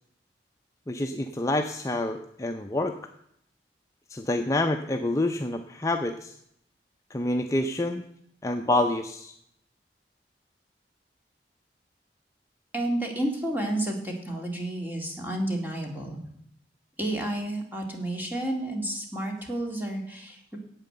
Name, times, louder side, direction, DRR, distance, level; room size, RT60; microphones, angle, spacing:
voice 1, 0.9-3.1 4.1-6.4 7.1-8.0 8.4-9.3, left 2 dB, 20° left, 4 dB, 0.5 m, -27 dB
voice 2, 12.7-16.2 17.0-20.6, right 1 dB, 10° right, 1 dB, 2.1 m, -31 dB
9.1 x 8.4 x 7.8 m, 0.71 s
head